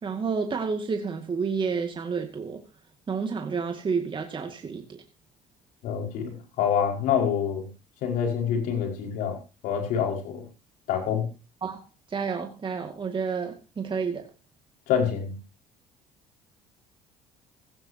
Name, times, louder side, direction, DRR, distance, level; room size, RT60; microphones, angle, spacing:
voice 1, 0.0-2.6 3.1-5.0 11.6-11.8 12.1-14.3, right 5 dB, 35° right, 2.2 m, -30 dB
voice 2, 5.8-7.7 8.0-9.4 9.6-10.4 10.9-11.3 14.9-15.3, left 8 dB, 75° left, 5.4 m, -26 dB
16.0 x 16.0 x 2.9 m
supercardioid pair, 70°, 14 cm